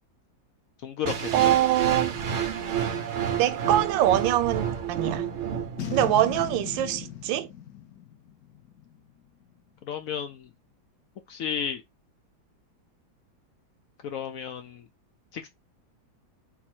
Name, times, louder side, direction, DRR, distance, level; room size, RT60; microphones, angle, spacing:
voice 1, 0.8-1.4 9.8-10.5 11.3-11.8 14.0-14.9 15.3-15.5, left 8 dB, 80° left, 0.7 m, -33 dB
sound 1, 1.0-7.1, right 8 dB, 65° right, 0.7 m, -30 dB
voice 2, 1.3-2.1 3.4-5.3 5.9-7.5, right 12 dB, 80° right, 1.3 m, -24 dB
Boom, 5.8-9.1, left 11 dB, 60° left, 1.2 m, -37 dB
4.1 x 2.6 x 4.3 m
omnidirectional pair, 2.1 m